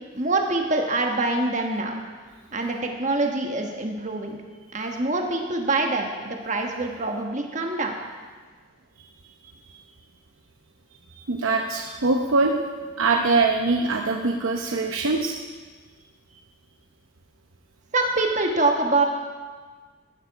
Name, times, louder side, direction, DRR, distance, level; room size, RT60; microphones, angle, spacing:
voice 1, 0.1-1.9 2.5-4.4 4.7-8.0 17.9-19.0, right 2 dB, 35° right, 2 dB, 1.4 m, -25 dB
voice 2, 11.2-12.6 13.0-15.3, right 3 dB, 85° right, 2 dB, 0.8 m, -23 dB
14.5 x 11.5 x 4.8 m, 1.5 s
head